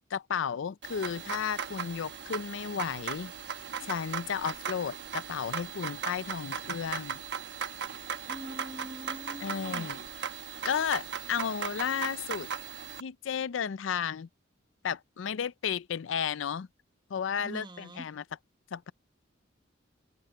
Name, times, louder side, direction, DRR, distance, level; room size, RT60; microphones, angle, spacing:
voice 1, 0.1-3.3 3.8-7.2 9.4-10.0 10.6-12.5 13.0-14.3 14.8-16.7 17.1-18.4 18.7-18.9, left 7 dB, 75° left, 0.4 m, -33 dB
sound 1, 0.8-13.0, right 7 dB, 60° right, 1.0 m, -38 dB
voice 2, 8.3-9.9 17.4-18.0, right 1 dB, 25° right, 1.2 m, -43 dB
head